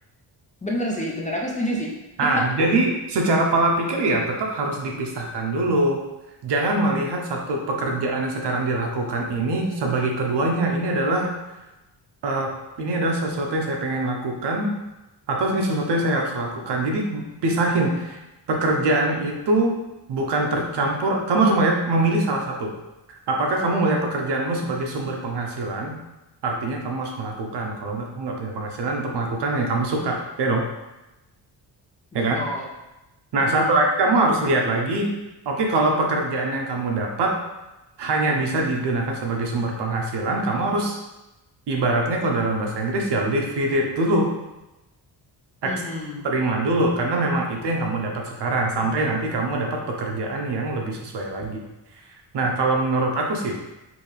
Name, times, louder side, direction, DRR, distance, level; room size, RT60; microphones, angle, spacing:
voice 1, 0.6-2.8 32.1-32.7 33.5-33.9 45.6-46.2 48.8-48.9, equal, 20° left, -3 dB, 0.4 m, -29 dB
voice 2, 2.2-6.0 6.4-11.3 12.2-12.5 12.8-14.7 15.3-18.2 18.5-19.7 20.1-22.7 23.3-25.9 26.4-30.6 32.1-32.4 33.3-35.1 35.5-37.4 38.0-41.0 41.7-44.3 45.6-45.7 46.2-51.6 52.3-53.5, right 2 dB, 70° right, 1 dB, 0.9 m, -23 dB
5.2 x 2.8 x 3.3 m, 0.99 s
wide cardioid pair, 175°, 43 cm